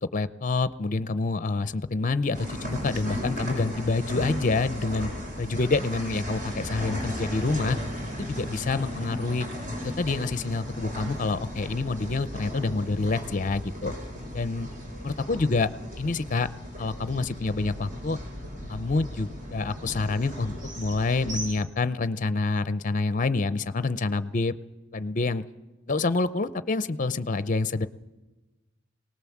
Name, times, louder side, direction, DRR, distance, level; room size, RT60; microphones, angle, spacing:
voice 1, 0.1-5.1 5.4-7.8 8.2-9.5 9.8-13.9 14.3-14.7 15.0-15.7 16.0-16.5 16.8-18.2 18.7-24.5 24.9-25.4 25.9-27.9, left 3 dB, 40° left, 14 dB, 0.6 m, -27 dB
sound 1, 2.3-21.5, equal, 45° right, 6.0 m, -36 dB
24.0 x 18.5 x 7.3 m, 1.1 s
head